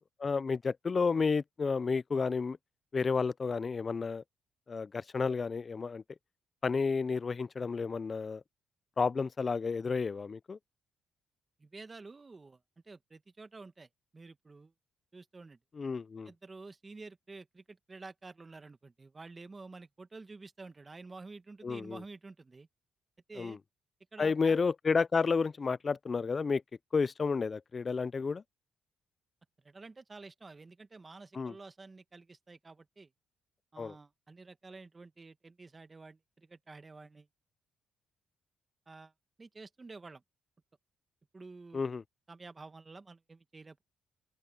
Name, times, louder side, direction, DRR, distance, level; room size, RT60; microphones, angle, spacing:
voice 1, 0.2-2.6 2.9-4.2 4.7-6.0 6.6-8.4 9.0-10.6 15.8-16.3 21.6-22.0 23.4-23.6 24.2-26.6 26.9-28.4 31.3-31.5 33.8-33.9 41.7-42.0, left 5 dB, 35° left, 0.4 m, -31 dB
voice 2, 11.6-14.7 15.1-15.6 16.2-22.7 23.3-23.6 24.1-24.6 29.6-33.1 33.7-37.3 38.9-39.1 39.4-40.2 41.3-41.8 42.3-43.8, right 3 dB, 25° right, 1.6 m, -50 dB
open air
cardioid pair, 90°, 0 cm